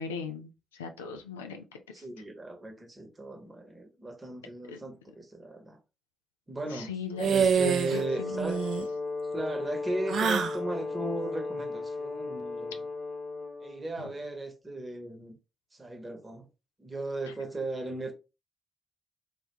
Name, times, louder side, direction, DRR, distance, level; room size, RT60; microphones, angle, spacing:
voice 1, 0.0-1.8 4.7-4.8 6.7-7.3 7.6-8.5 14.0-14.1, left 6 dB, 85° left, 0.3 m, -39 dB
voice 2, 1.9-5.8 6.5-8.6 9.3-12.8 13.6-15.4 15.7-16.5 16.8-18.1, right 2 dB, 30° right, 0.9 m, -36 dB
sound 1, 7.2-8.0 8.3-8.9 10.1-10.6, right 6 dB, 60° right, 0.3 m, -26 dB
Brass instrument, 7.8-13.8, left 3 dB, 45° left, 0.7 m, -36 dB
2.4 x 2.1 x 2.9 m
figure-of-eight pair, 40°, 0 cm